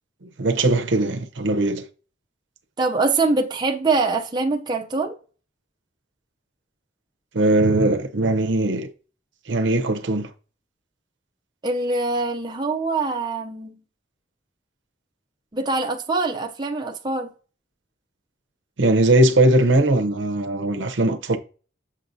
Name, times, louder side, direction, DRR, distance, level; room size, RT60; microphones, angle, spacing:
voice 1, 0.2-1.8 7.3-8.9 9.5-10.3 18.8-21.4, right 2 dB, 70° right, 0.7 m, -20 dB
voice 2, 2.8-5.2 11.6-13.8 15.5-17.3, right 3 dB, 20° right, 0.5 m, -24 dB
7.5 x 5.8 x 2.7 m
head